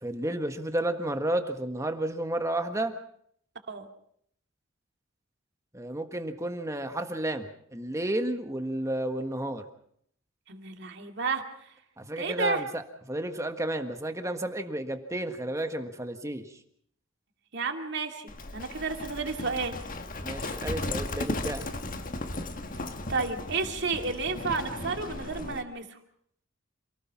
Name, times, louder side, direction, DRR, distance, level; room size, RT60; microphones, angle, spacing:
voice 1, 0.0-2.9 5.7-9.7 12.0-16.5 20.2-21.7, right 1 dB, 15° right, 7 dB, 1.6 m, -32 dB
voice 2, 10.5-11.4 12.2-12.6 17.5-19.8 23.1-26.0, right 4 dB, 55° right, 5 dB, 2.5 m, -31 dB
Livestock farm animals working animals, 18.3-25.6, left 2 dB, 40° left, 1.5 m, -36 dB
28.0 x 18.5 x 6.0 m, 0.67 s
head